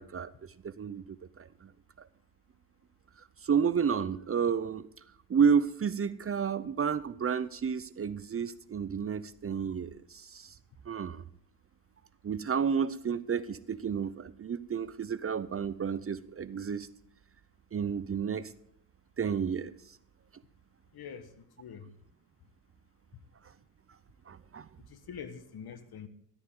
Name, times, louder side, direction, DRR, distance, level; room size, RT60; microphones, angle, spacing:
voice 1, 0.0-1.7 3.4-4.9 5.3-10.5 10.9-11.2 12.2-16.9 17.7-18.5 19.2-19.7 24.3-24.7, right 6 dB, 35° right, 15 dB, 0.6 m, -31 dB
voice 2, 20.9-21.9 24.8-26.1, left 7 dB, 60° left, 11 dB, 1.4 m, -45 dB
13.0 x 12.5 x 3.8 m, 0.71 s
cardioid pair, 75°, 43 cm